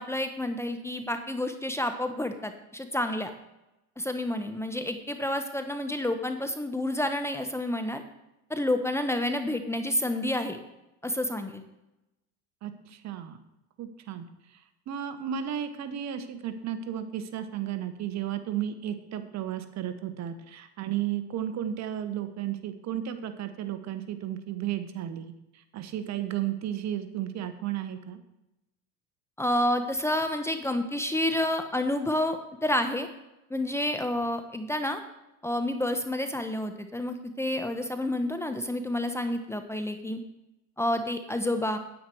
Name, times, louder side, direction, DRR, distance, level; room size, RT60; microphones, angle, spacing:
voice 1, 0.0-3.3 4.0-8.0 8.5-10.6 11.0-11.6 29.4-33.1 33.5-35.0 35.4-40.2 40.8-41.8, left 1 dB, 5° left, 7 dB, 0.9 m, -29 dB
voice 2, 12.6-13.4 13.8-28.2, right 10 dB, 50° right, 9 dB, 1.3 m, -34 dB
9.4 x 9.4 x 4.6 m, 0.92 s
supercardioid pair, 95°, 35 cm